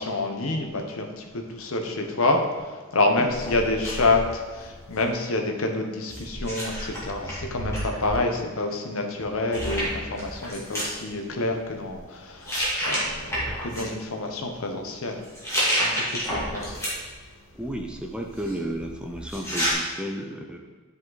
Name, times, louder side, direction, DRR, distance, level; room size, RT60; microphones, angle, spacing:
voice 1, 0.0-13.3 13.6-15.3 15.8-16.8, left 2 dB, 75° left, 3 dB, 1.0 m, -27 dB
sound 1, 3.3-5.1 6.1-8.1 9.2-9.3 9.5-10.9 11.7-12.0 12.4-13.8 15.2-17.2 17.6-19.7, equal, 15° left, 2.0 m, -30 dB
voice 2, 17.6-20.6, right 1 dB, 5° right, 2 dB, 0.5 m, -33 dB
9.8 x 5.2 x 4.0 m, 1.4 s
head